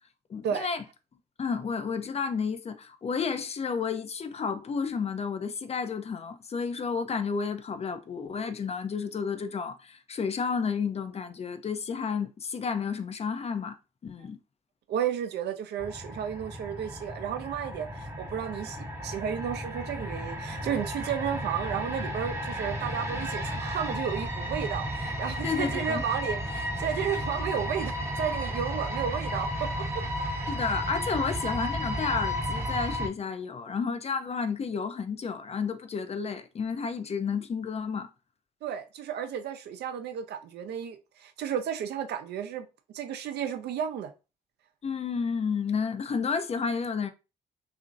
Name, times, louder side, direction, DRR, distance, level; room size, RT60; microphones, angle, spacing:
voice 1, 0.3-0.8 1.4-13.8 14.0-14.4 25.4-26.0 30.5-38.1 44.8-47.1, left 5 dB, 35° left, 0.4 m, -31 dB
voice 2, 14.9-30.0 38.6-42.7 42.9-44.1, right 8 dB, 60° right, 0.5 m, -33 dB
sound 1, 15.8-33.1, equal, 15° right, 0.7 m, -33 dB
2.8 x 2.5 x 2.5 m
hypercardioid pair, 45°, 19 cm